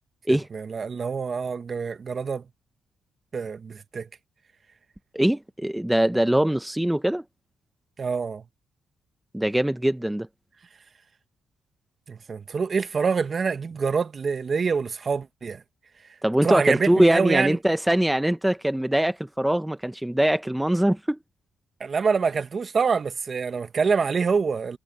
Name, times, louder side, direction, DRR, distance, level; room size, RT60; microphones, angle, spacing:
voice 1, 0.3-2.4 3.3-4.1 8.0-8.4 12.1-15.6 16.4-17.6 21.8-24.8, right 5 dB, 45° right, 1.5 m, -26 dB
voice 2, 5.1-7.2 9.3-10.3 16.2-21.2, right 1 dB, 5° right, 1.0 m, -22 dB
cardioid pair, 75°, 0 cm